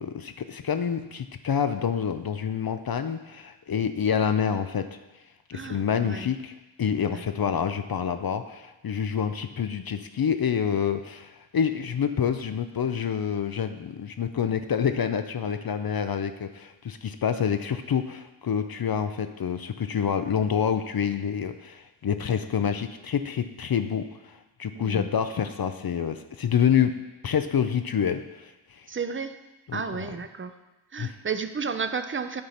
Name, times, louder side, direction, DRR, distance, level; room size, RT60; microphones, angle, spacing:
voice 1, 0.0-4.9 5.5-6.5 6.8-26.9 27.2-28.9 29.7-30.1 31.0-31.1, left 7 dB, 50° left, 9 dB, 0.5 m, -27 dB
voice 2, 5.5-6.3 7.1-7.2 24.7-25.1 28.9-29.3 29.7-30.5 30.9-32.4, right 5 dB, 25° right, 9 dB, 0.6 m, -32 dB
8.7 x 4.0 x 5.8 m, 1.1 s
cardioid pair, 50°, 46 cm